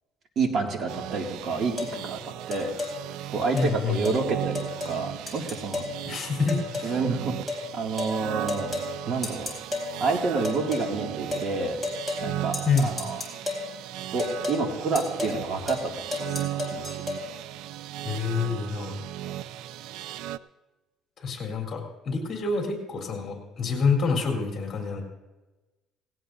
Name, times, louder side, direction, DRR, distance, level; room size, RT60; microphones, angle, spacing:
voice 1, 0.4-2.7 3.3-5.8 6.8-7.3 7.7-8.7 9.0-9.5 10.0-11.8 12.2-13.2 14.1-15.9 16.2-17.0 19.2-19.4, right 4 dB, 45° right, 2 dB, 2.2 m, -29 dB
sound 1, 0.9-20.4, right 12 dB, 80° right, 0.4 m, -37 dB
sound 2, 1.8-2.0 2.5-2.9 3.6-3.7 4.1-4.2 4.6-5.0 5.3-5.9 6.5-7.0 7.5-7.6 8.0-8.2 8.5-8.9 9.2-9.9 10.4-10.9 11.3-11.5 11.8-12.3 12.5-13.7 14.2-14.6 15.0-15.4 15.7-17.2, left 3 dB, ahead, 3.7 m, -32 dB
voice 2, 3.5-4.0 6.1-6.9 12.6-12.9 18.0-19.0 21.2-25.0, left 4 dB, 35° left, 0 dB, 3.7 m, -27 dB
18.0 x 16.5 x 2.7 m, 1.1 s
cardioid pair, 130°, 0 cm